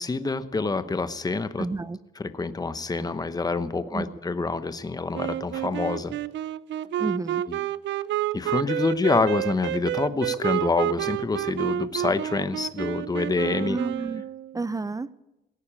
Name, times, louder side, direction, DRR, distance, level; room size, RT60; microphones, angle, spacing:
voice 1, 0.0-1.7 2.1-6.1 7.5-7.7 8.3-13.8, left 3 dB, 20° left, 12 dB, 0.9 m, -27 dB
voice 2, 1.6-2.0 3.9-4.1 7.0-7.4 13.7-14.2 14.5-15.1, right 3 dB, 15° right, 17 dB, 0.6 m, -30 dB
Wind instrument woodwind instrument, 5.1-14.6, right 12 dB, 65° right, 0.5 m, -29 dB
17.5 x 9.6 x 8.7 m, 1.0 s
cardioid pair, 90°, 20 cm